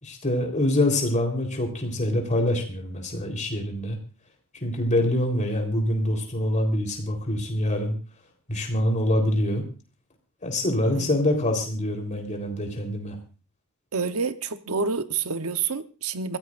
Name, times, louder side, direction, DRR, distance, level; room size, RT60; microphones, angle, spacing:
voice 1, 0.0-4.0 4.6-7.9 8.5-9.7 10.4-13.2, left 1 dB, 35° left, 3.8 m, -25 dB
voice 2, 10.8-11.2 13.9-16.4, right 5 dB, 70° right, 1.0 m, -28 dB
25.5 x 15.5 x 2.6 m
head